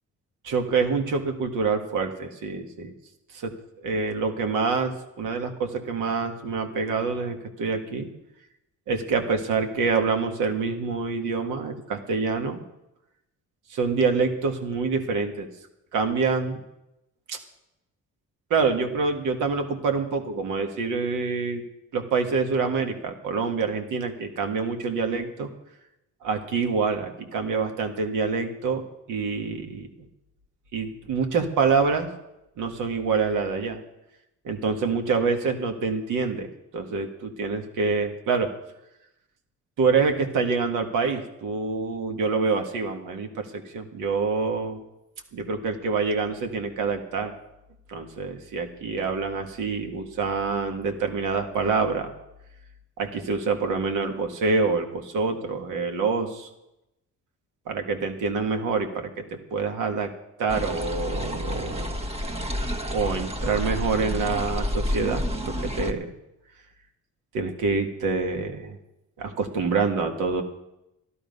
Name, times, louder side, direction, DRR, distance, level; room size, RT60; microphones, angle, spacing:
voice 1, 0.4-2.9 3.3-3.5 3.8-8.1 8.9-12.6 13.7-15.5 15.9-16.6 17.3-17.4 18.5-21.6 21.9-25.5 26.2-30.1 30.7-32.1 32.6-33.8 34.4-38.5 39.8-44.8 45.3-47.3 47.9-52.1 53.0-56.5 57.7-60.1 60.4-62.0 62.9-66.1 67.3-68.8 69.2-70.4, right 4 dB, 85° right, 5 dB, 1.8 m, -26 dB
sound 1, 60.5-65.9, equal, 20° right, 1.3 m, -29 dB
12.5 x 12.5 x 5.4 m, 0.89 s
cardioid pair, 90°, 30 cm